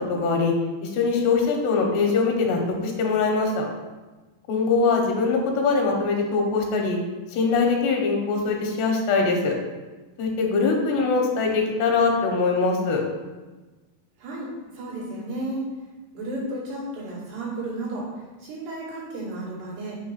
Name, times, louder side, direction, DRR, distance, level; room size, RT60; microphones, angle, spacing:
voice 1, 0.1-0.5 0.8-3.6 4.5-7.0 7.3-9.5 10.2-13.0, left 4 dB, 85° left, 1 dB, 3.2 m, -22 dB
voice 2, 14.2-15.7 16.1-20.0, right 2 dB, 80° right, -7 dB, 4.4 m, -33 dB
8.4 x 3.1 x 5.7 m, 1.2 s
omnidirectional pair, 4.7 m